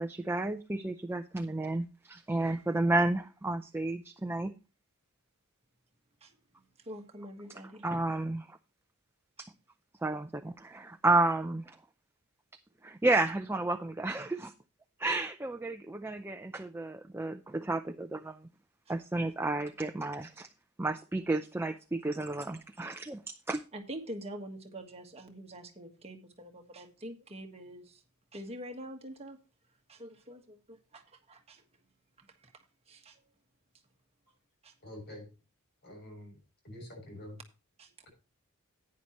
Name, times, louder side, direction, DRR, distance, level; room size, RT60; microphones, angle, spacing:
voice 1, 0.0-4.5 7.8-8.6 10.0-11.8 12.8-14.5 15.0-18.5 18.9-20.5 20.8-23.2 23.5-23.6, right 2 dB, 10° right, 0.5 m, -31 dB
voice 2, 6.2-7.8 9.4-9.5 23.7-28.0 28.3-29.4 29.9-31.6 32.2-33.2 34.6-34.7 37.8-38.0, right 1 dB, 30° right, 1.4 m, -46 dB
voice 3, 34.8-35.3 35.8-36.4 36.6-37.4, left 1 dB, 50° left, 6.8 m, -46 dB
10.5 x 9.6 x 3.0 m
head